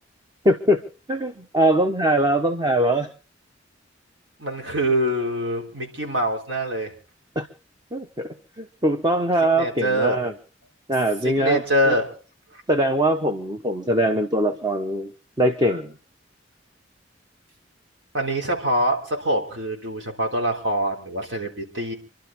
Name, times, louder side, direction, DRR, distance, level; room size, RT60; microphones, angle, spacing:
voice 1, 0.4-0.8 1.1-3.1 7.4-7.5 7.9-10.3 10.9-12.0 12.7-15.1 15.4-15.9, right 1 dB, 20° right, 6 dB, 1.0 m, -22 dB
voice 2, 4.4-6.9 9.6-10.2 11.2-12.2 12.5-12.6 18.1-21.9, right 1 dB, 85° right, 1 dB, 3.5 m, -24 dB
27.5 x 11.5 x 3.6 m, 0.36 s
head